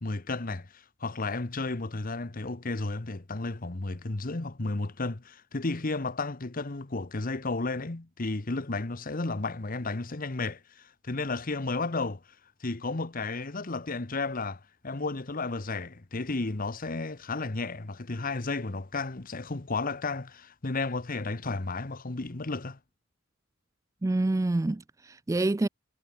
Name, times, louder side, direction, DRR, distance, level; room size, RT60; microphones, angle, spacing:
voice 1, 0.0-12.2 12.6-22.8, left 3 dB, 45° left, 1.1 m, -33 dB
voice 2, 24.0-25.7, right 2 dB, 15° right, 0.3 m, -27 dB
head